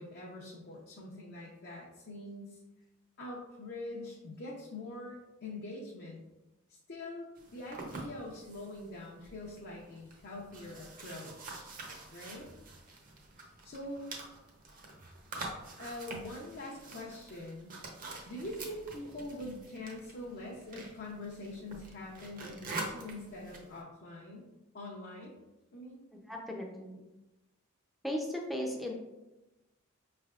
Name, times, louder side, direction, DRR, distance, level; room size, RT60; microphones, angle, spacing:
voice 1, 0.0-2.6 3.2-6.3 6.7-11.7 12.1-12.5 13.6-14.1 15.8-17.8 18.3-24.5 24.7-25.4 25.7-26.0, left 1 dB, 50° left, -4 dB, 0.6 m, -44 dB
sound 1, 7.4-23.8, right 2 dB, 40° right, 0.7 m, -46 dB
voice 2, 26.3-27.1 28.0-29.0, left 1 dB, ahead, 0 dB, 0.5 m, -36 dB
5.4 x 3.3 x 2.4 m, 1.0 s
head